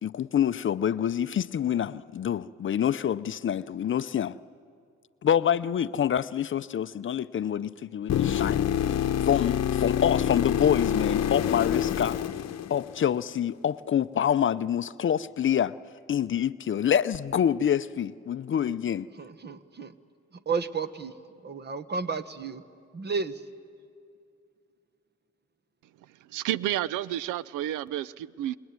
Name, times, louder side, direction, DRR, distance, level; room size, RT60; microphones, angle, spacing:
voice 1, 0.0-4.4 5.2-12.2 12.7-15.7 16.1-19.1, left 9 dB, 40° left, 0.6 m, -26 dB
sound 1, 8.1-13.2 17.1-17.2, left 9 dB, 60° left, 0.9 m, -27 dB
voice 2, 19.1-20.0 20.3-21.2 21.4-22.6 22.9-23.4, right 5 dB, 35° right, 1.2 m, -32 dB
voice 3, 26.3-28.6, right 13 dB, 90° right, 0.5 m, -30 dB
27.0 x 20.5 x 9.6 m
cardioid pair, 90°, 30 cm